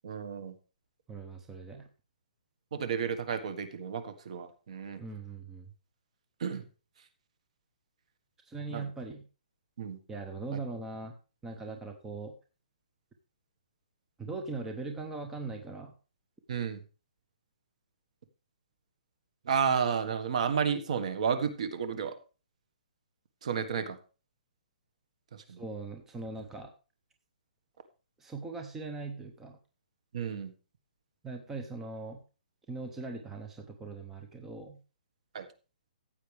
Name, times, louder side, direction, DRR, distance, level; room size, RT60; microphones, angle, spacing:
voice 1, 0.0-0.6 2.7-5.0 6.4-6.7 8.7-8.8 9.8-10.0 10.5-10.6 16.5-16.8 19.4-22.2 23.4-24.0 25.3-25.6 30.1-30.5 35.3-35.5, right 7 dB, 45° right, 10 dB, 1.6 m, -32 dB
voice 2, 1.1-1.9 5.0-5.7 8.5-9.2 10.1-11.1 11.4-12.3 14.2-15.9 25.5-26.7 28.2-29.6 31.2-32.2 32.7-34.8, right 3 dB, 5° right, 4 dB, 0.7 m, -40 dB
15.0 x 8.1 x 3.4 m, 0.34 s
hypercardioid pair, 175°, 5 cm